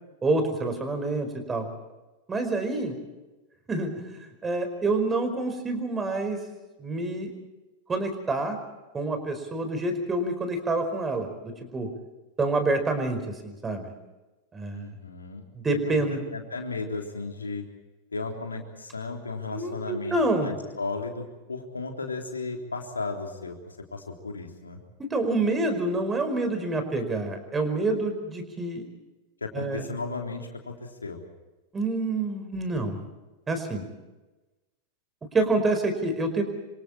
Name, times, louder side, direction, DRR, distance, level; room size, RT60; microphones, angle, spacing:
voice 1, 0.2-1.7 2.3-3.0 3.7-6.4 6.8-7.3 7.9-8.6 8.9-11.9 12.4-13.9 14.5-14.9 15.5-16.2 19.5-20.5 25.0-28.9 29.5-29.8 31.7-33.0 33.5-33.8 35.3-36.4, right 2 dB, 15° right, 7 dB, 5.0 m, -27 dB
voice 2, 14.7-15.4 15.7-16.0 16.3-17.6 18.1-24.8 29.4-31.2, left 3 dB, 75° left, 3 dB, 3.6 m, -35 dB
27.5 x 26.0 x 4.4 m, 1.1 s
figure-of-eight pair, 90°, 0 cm